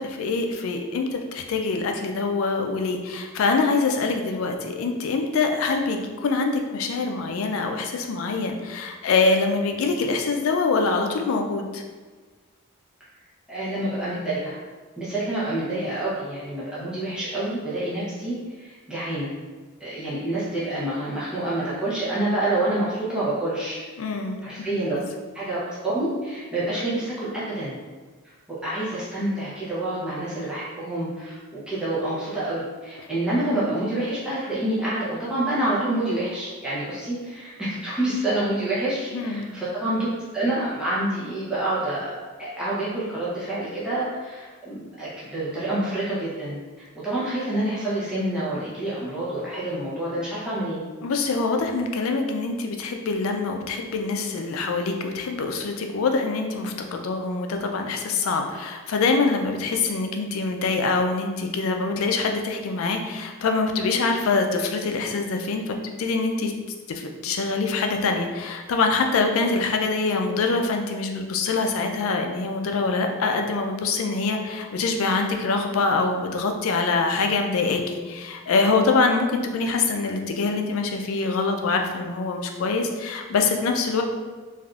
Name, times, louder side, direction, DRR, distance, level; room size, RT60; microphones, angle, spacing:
voice 1, 0.0-11.8 24.0-24.4 24.7-25.0 39.1-39.5 51.0-66.5 66.9-84.0, left 4 dB, 75° left, 4 dB, 0.4 m, -24 dB
voice 2, 13.5-14.5 15.0-19.3 19.8-23.8 24.4-25.0 25.3-27.7 28.6-40.1 40.3-42.1 42.4-46.6 47.0-50.8, right 1 dB, 5° right, -11 dB, 0.7 m, -27 dB
3.3 x 2.5 x 2.3 m, 1.4 s
head